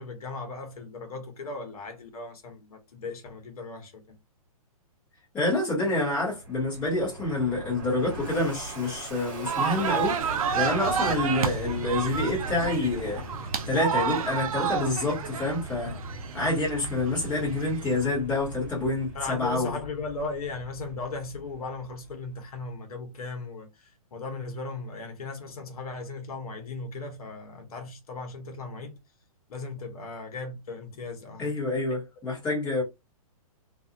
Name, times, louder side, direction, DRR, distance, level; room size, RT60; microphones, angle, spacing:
voice 1, 0.0-4.2 19.1-29.0 29.5-31.5, left 3 dB, 75° left, 1.0 m, -37 dB
voice 2, 5.3-10.2 10.5-13.2 13.7-16.0 16.3-19.8 31.4-32.8, left 2 dB, 10° left, 1.1 m, -27 dB
Fixed-wing aircraft airplane, 5.9-22.4, right 2 dB, 35° right, 1.4 m, -39 dB
sound 1, 9.4-18.1, right 7 dB, 70° right, 0.5 m, -31 dB
2.5 x 2.4 x 2.7 m
hypercardioid pair, 175°, 19 cm